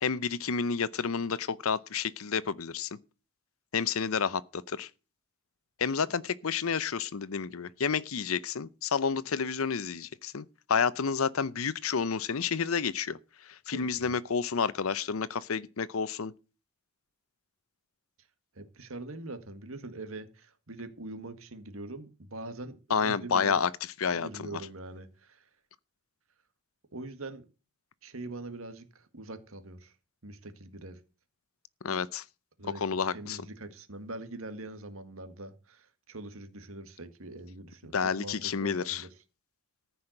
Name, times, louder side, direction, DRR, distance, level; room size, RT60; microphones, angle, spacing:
voice 1, 0.0-2.9 3.7-4.9 5.8-16.3 22.9-23.7 24.0-24.5 31.8-32.2 32.6-33.4 37.9-39.0, left 6 dB, 85° left, 0.7 m, -30 dB
voice 2, 13.7-14.1 18.2-18.3 18.5-23.6 24.1-25.5 26.9-27.5 28.0-30.0 30.2-31.0 32.6-39.2, right 2 dB, 80° right, 1.7 m, -43 dB
14.0 x 5.7 x 7.8 m
head